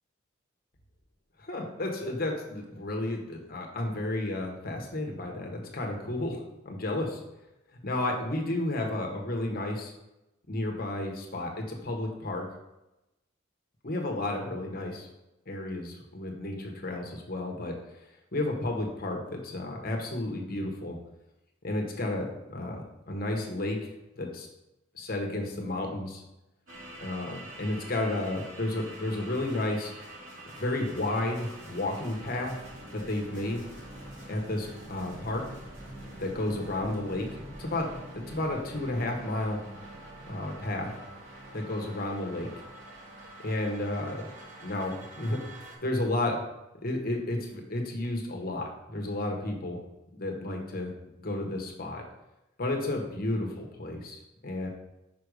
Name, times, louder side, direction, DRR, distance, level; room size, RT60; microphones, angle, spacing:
voice 1, 1.4-6.4 6.6-7.2 7.8-9.9 10.5-12.4 13.8-15.1 15.5-17.7 18.3-21.0 21.6-23.9 24.2-24.5 24.9-26.2 27.0-29.9 30.6-32.5 32.9-33.7 34.3-35.4 36.2-37.9 38.1-39.6 40.3-40.9 41.5-42.5 43.4-44.3 44.6-45.4 45.8-46.4 46.8-49.8 50.1-50.9 51.2-52.0 52.6-54.7, left 1 dB, 50° left, 1 dB, 1.1 m, -32 dB
sound 1, 26.7-45.8, right 1 dB, 85° right, 2.6 m, -46 dB
5.6 x 5.1 x 4.8 m, 0.96 s
head